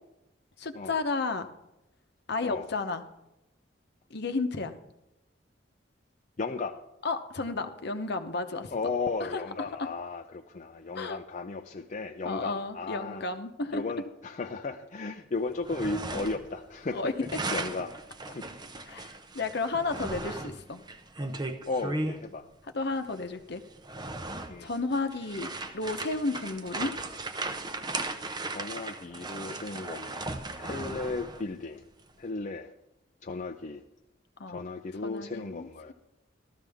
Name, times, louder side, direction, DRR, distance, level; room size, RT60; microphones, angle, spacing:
voice 1, 0.6-1.5 2.3-3.0 4.1-4.7 7.0-8.7 9.2-9.9 10.9-11.2 12.2-13.8 16.9-17.4 18.9-20.8 22.7-23.6 24.6-25.5 25.7-26.9 30.8-31.0 34.4-34.6 35.0-35.9, left 3 dB, 60° left, 8 dB, 0.9 m, -32 dB
voice 2, 6.4-6.8 8.7-13.2 13.7-17.1 17.5-17.9 18.3-18.5 21.7-22.5 24.5-24.7 28.5-31.8 32.2-32.7 33.2-33.8 34.5-35.9, left 3 dB, 40° left, 4 dB, 0.5 m, -35 dB
sound 1, 15.5-16.6 16.8-22.2 23.1-23.2 23.7-31.5, right 2 dB, 20° right, 0.7 m, -37 dB
14.5 x 13.0 x 3.5 m, 0.90 s
head